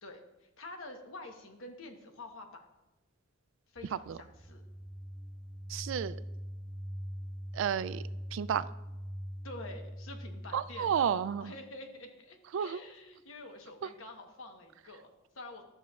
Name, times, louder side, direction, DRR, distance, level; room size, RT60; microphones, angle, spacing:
voice 1, 0.0-2.7 3.7-4.6 9.4-15.6, left 2 dB, 85° left, 4 dB, 1.1 m, -48 dB
sound 1, 3.8-11.5, equal, 70° left, 3.2 m, -43 dB
voice 2, 5.7-6.2 7.5-8.0 8.3-8.6 10.5-11.5 12.5-12.8 13.8-13.9, right 8 dB, 65° right, 15 dB, 0.3 m, -31 dB
12.5 x 7.1 x 2.4 m, 1.0 s
head